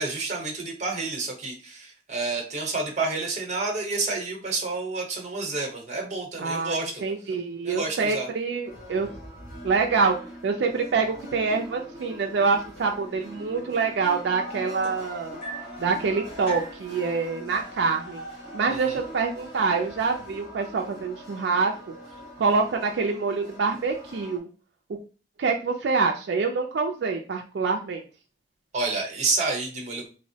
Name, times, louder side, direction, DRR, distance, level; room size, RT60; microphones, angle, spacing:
voice 1, 0.0-7.4 7.6-8.3 18.7-19.0 28.7-30.1, right 3 dB, 40° right, 1 dB, 0.9 m, -29 dB
voice 2, 6.4-9.1 9.6-15.4 15.8-18.2 18.5-21.9 22.4-24.5 25.4-28.0, right 4 dB, 80° right, 3 dB, 0.4 m, -26 dB
sound 1, 8.6-24.4, equal, 70° left, 1.4 m, -42 dB
sound 2, 14.8-15.8 16.5-16.9 17.9-18.0 18.4-18.7 19.5-19.6, right 2 dB, 35° left, 1.0 m, -40 dB
3.5 x 2.0 x 2.7 m, 0.36 s
head